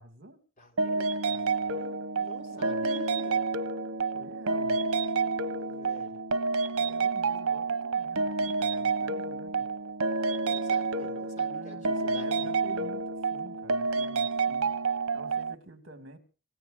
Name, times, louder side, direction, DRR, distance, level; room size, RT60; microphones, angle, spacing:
voice 1, 0.0-0.4 2.4-2.9 4.1-4.8 6.8-9.7 10.9-11.1 11.4-16.2, right 2 dB, 60° right, 2.5 m, -49 dB
voice 2, 0.6-3.5 4.9-6.2 10.4-12.9, equal, 35° left, 3.3 m, -49 dB
sound 1, 0.8-15.5, right 4 dB, 90° right, 0.9 m, -29 dB
27.0 x 15.5 x 2.7 m
head